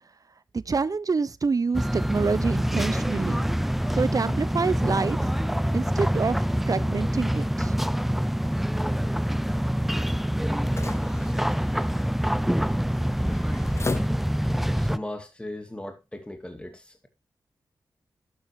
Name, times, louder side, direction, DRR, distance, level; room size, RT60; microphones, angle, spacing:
voice 1, 0.5-3.4 3.9-5.3 5.7-7.7, right 4 dB, 45° right, 0.8 m, -27 dB
sound 1, 1.7-15.0, equal, 5° right, 0.5 m, -26 dB
sound 2, 10.5-14.7, left 3 dB, 35° left, 1.1 m, -40 dB
voice 2, 14.7-17.1, left 1 dB, 15° left, 2.4 m, -38 dB
11.5 x 9.4 x 3.3 m
wide cardioid pair, 90°, 8 cm